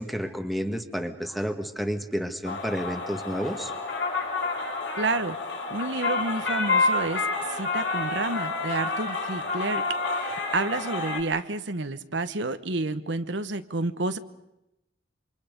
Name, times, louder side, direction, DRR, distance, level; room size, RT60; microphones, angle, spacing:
voice 1, 0.0-3.7, equal, ahead, 6 dB, 1.5 m, -30 dB
sound 1, 2.4-11.2, left 3 dB, 70° left, 5.1 m, -29 dB
voice 2, 5.0-5.4 5.7-9.8 10.1-14.2, right 3 dB, 70° right, 10 dB, 1.2 m, -30 dB
28.0 x 26.0 x 5.3 m, 0.88 s
head